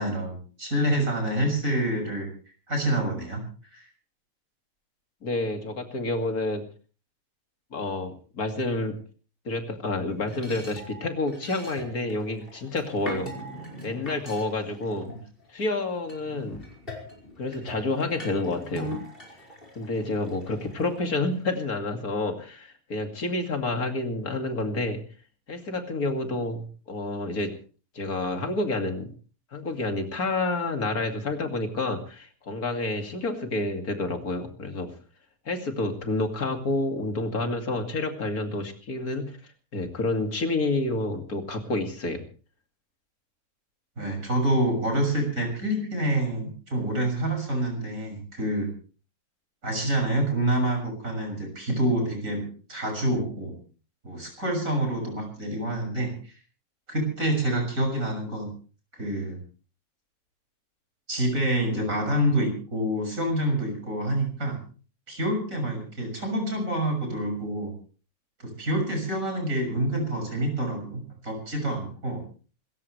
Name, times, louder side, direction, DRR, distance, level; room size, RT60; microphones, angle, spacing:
voice 1, 0.0-2.3 2.7-3.4 3.7-3.8 15.1-15.2 44.0-48.7 49.6-53.6 54.0-56.1 56.9-58.5 58.9-59.4 61.1-64.6 65.1-67.7 68.4-72.2, right 1 dB, 65° right, 3 dB, 7.0 m, -27 dB
voice 2, 5.2-6.6 7.7-9.0 9.4-13.3 13.8-15.1 15.5-16.6 17.4-18.9 19.8-25.0 25.5-27.5 27.9-29.1 29.5-34.9 35.5-39.4 39.7-42.2, left 2 dB, 80° left, 5 dB, 2.9 m, -29 dB
sound 1, 10.0-15.6 16.1-21.6, equal, 35° left, 5.4 m, -41 dB
26.0 x 14.5 x 3.3 m, 0.39 s
omnidirectional pair, 1.5 m